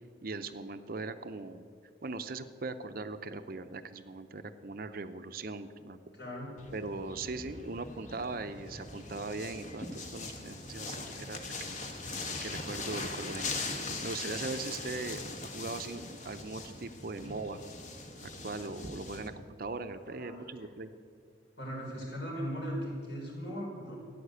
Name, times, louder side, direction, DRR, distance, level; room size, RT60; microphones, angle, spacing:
voice 1, 0.2-1.6 2.0-6.0 6.7-11.4 11.7-11.8 12.4-13.5 14.0-17.6 18.2-20.9, right 3 dB, 50° right, 10 dB, 0.6 m, -40 dB
voice 2, 6.1-6.5 19.9-20.7 21.6-24.0, equal, 60° left, -3 dB, 4.9 m, -39 dB
sound 1, 6.6-19.3, left 3 dB, 40° left, 1.4 m, -41 dB
14.5 x 9.2 x 8.1 m, 2.2 s
head